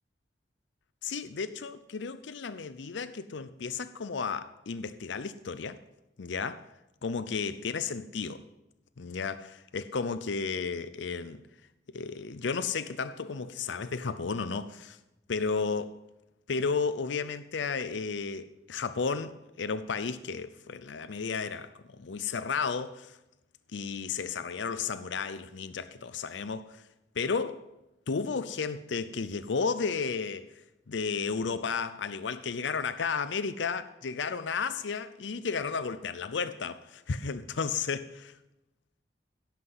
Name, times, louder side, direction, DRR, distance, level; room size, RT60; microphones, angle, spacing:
voice 1, 1.0-5.8 6.2-6.6 7.0-8.4 9.0-11.4 11.9-15.0 15.3-16.0 16.5-23.2 23.7-26.8 27.2-27.6 28.1-30.5 30.9-38.2, left 5 dB, 80° left, 0.6 m, -33 dB
16.5 x 5.9 x 7.8 m
head